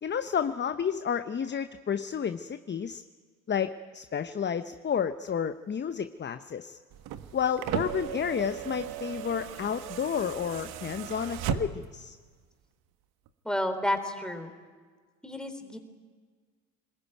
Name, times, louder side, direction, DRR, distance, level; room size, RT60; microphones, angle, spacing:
voice 1, 0.0-3.0 3.5-6.8 7.3-12.2, left 7 dB, 25° left, 11 dB, 1.0 m, -31 dB
sound 1, 6.9-12.0 13.3-13.4, right 10 dB, 55° right, 1.6 m, -36 dB
voice 2, 13.4-14.5 15.2-15.8, left 1 dB, ahead, 6 dB, 3.8 m, -31 dB
26.5 x 20.5 x 9.3 m, 1.5 s
hypercardioid pair, 65°, 43 cm